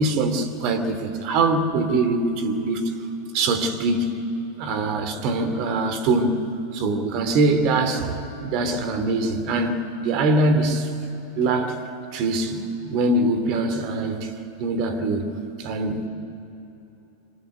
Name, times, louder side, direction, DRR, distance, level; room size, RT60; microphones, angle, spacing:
voice 1, 0.0-2.9 3.3-4.2 4.6-10.9 11.3-11.8 12.1-14.3 14.6-15.3 15.6-16.1, right 2 dB, 40° right, 2.9 m, -23 dB
25.0 x 20.5 x 9.4 m
figure-of-eight pair, 90°, 0 cm